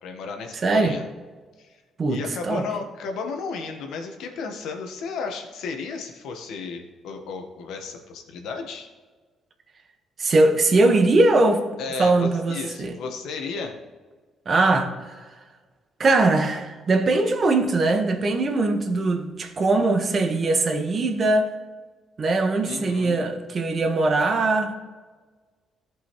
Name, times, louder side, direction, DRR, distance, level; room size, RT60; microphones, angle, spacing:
voice 1, 0.0-1.0 1.6-1.8 2.1-8.9 11.8-13.8 22.6-23.2, left 4 dB, 85° left, 1.4 m, -33 dB
voice 2, 0.6-1.0 2.0-2.7 10.2-11.7 12.0-13.0 14.4-15.3 16.0-21.5 22.2-24.7, right 2 dB, 45° right, 1.4 m, -21 dB
14.5 x 5.5 x 3.2 m
cardioid pair, 90°, 0 cm